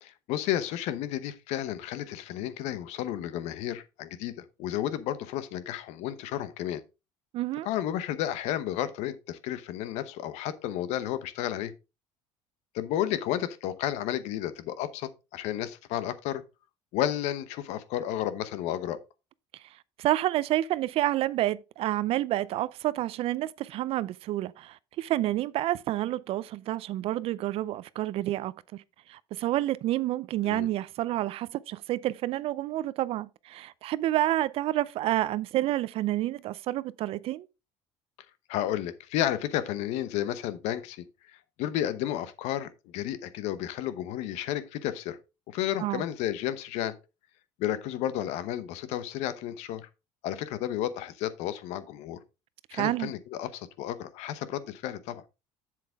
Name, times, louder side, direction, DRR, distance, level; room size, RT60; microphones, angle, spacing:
voice 1, 0.0-6.8 7.6-11.7 12.7-16.4 16.9-19.0 30.4-30.7 38.5-45.2 45.5-47.0 47.6-49.9 50.2-52.2 52.7-55.2, left 12 dB, 75° left, 0.9 m, -32 dB
voice 2, 7.3-7.7 20.0-28.8 29.1-37.5 45.8-46.0 52.7-53.1, right 14 dB, 55° right, 0.5 m, -29 dB
7.6 x 7.5 x 3.5 m
cardioid pair, 110°, 12 cm